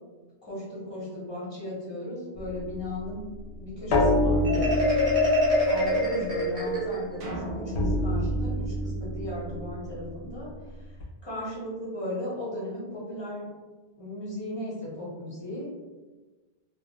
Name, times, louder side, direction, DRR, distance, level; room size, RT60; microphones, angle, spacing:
voice 1, 0.4-3.2 3.6-4.7 5.7-10.5 11.2-13.4 14.0-15.7, left 1 dB, 25° left, -8 dB, 0.9 m, -36 dB
sound 1, 2.4-7.2 7.7-11.0, left 1 dB, 75° left, 0.8 m, -29 dB
Marimba xylophone, 4.4-7.2, left 1 dB, 25° right, 0.8 m, -25 dB
sound 2, 7.2-9.7, right 1 dB, 60° right, 0.3 m, -39 dB
2.4 x 2.2 x 2.8 m, 1.3 s
omnidirectional pair, 1.1 m